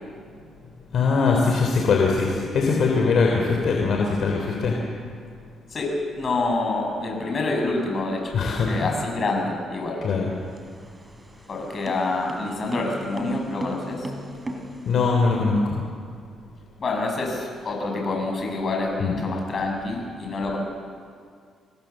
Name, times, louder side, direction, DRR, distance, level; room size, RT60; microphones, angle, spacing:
voice 1, 0.9-4.7 8.3-8.7 10.0-10.3 14.9-15.8 19.0-19.1, left 4 dB, 65° left, 1 dB, 3.5 m, -21 dB
voice 2, 5.7-8.4 8.7-10.0 11.5-14.1 16.8-20.6, left 2 dB, 45° left, 0 dB, 7.9 m, -27 dB
sound 1, 10.4-15.1, right 1 dB, 20° right, 3.6 m, -37 dB
28.0 x 20.5 x 7.5 m, 2.2 s
cardioid pair, 90°, 0 cm